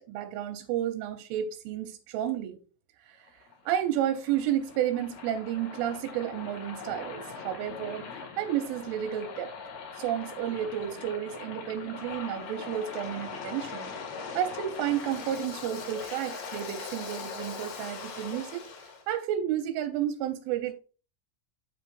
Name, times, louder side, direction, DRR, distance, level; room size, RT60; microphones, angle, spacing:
voice 1, 0.1-2.6 3.0-3.3 3.7-8.1 8.4-9.5 10.0-20.7, right 11 dB, 90° right, 3.1 m, -31 dB
Waves surf, 3.2-19.0, left 5 dB, 60° left, 3.4 m, -41 dB
7.8 x 6.8 x 2.4 m
omnidirectional pair, 5.6 m